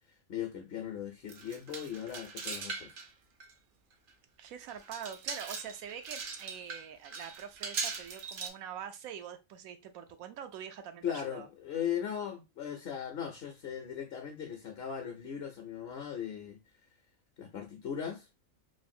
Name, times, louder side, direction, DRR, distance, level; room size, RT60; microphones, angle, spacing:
voice 1, 0.3-3.0 11.0-16.6 17.4-18.3, left 9 dB, 60° left, 0.7 m, -38 dB
sound 1, 1.3-3.1 3.4-3.5 4.1-4.2 4.7-8.5, right 5 dB, 60° right, 0.5 m, -40 dB
voice 2, 4.4-11.5, right 8 dB, 90° right, 1.0 m, -44 dB
3.2 x 2.5 x 2.6 m
omnidirectional pair, 1.4 m